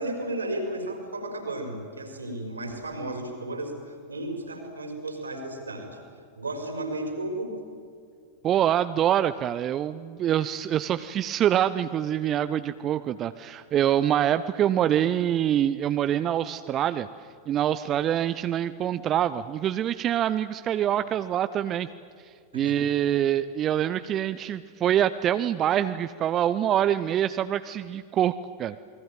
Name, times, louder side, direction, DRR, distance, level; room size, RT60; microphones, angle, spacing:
voice 1, 0.0-6.0 6.4-7.5 22.5-22.8, right 1 dB, 75° right, 5 dB, 5.4 m, -34 dB
voice 2, 8.4-17.1 17.5-21.9 22.5-28.3 28.6-28.8, right 10 dB, 30° right, 12 dB, 0.7 m, -25 dB
28.5 x 21.0 x 9.2 m, 2.3 s
figure-of-eight pair, 90°, 0 cm